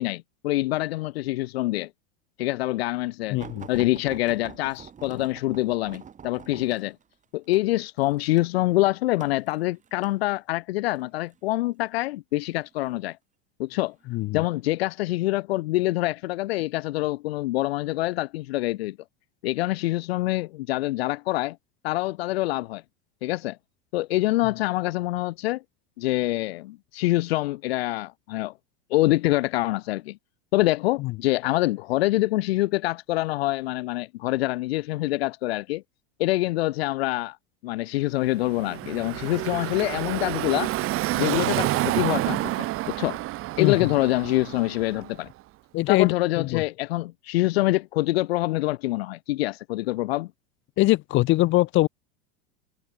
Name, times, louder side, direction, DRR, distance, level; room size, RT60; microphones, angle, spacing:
voice 1, 0.0-1.9 2.4-3.4 3.7-7.0 7.3-13.2 13.6-13.9 14.3-19.0 19.4-21.6 21.8-22.8 23.2-23.6 23.9-25.6 26.0-28.5 28.9-30.2 30.5-35.8 36.2-37.4 37.6-40.7 41.1-43.2 43.6-45.3 45.9-50.3, left 18 dB, 80° left, 0.6 m, -25 dB
voice 2, 3.3-3.9 14.1-14.4 43.6-43.9 45.7-46.6 50.8-51.9, left 19 dB, 40° left, 0.7 m, -23 dB
sound 1, 3.4-10.2 11.0-11.4 12.3-13.0 13.7-13.9 14.3-14.4, right 7 dB, 25° right, 3.4 m, -45 dB
Car passing by / Traffic noise roadway noise, 38.3-45.3, right 17 dB, 45° right, 2.4 m, -29 dB
supercardioid pair, 115°, 31 cm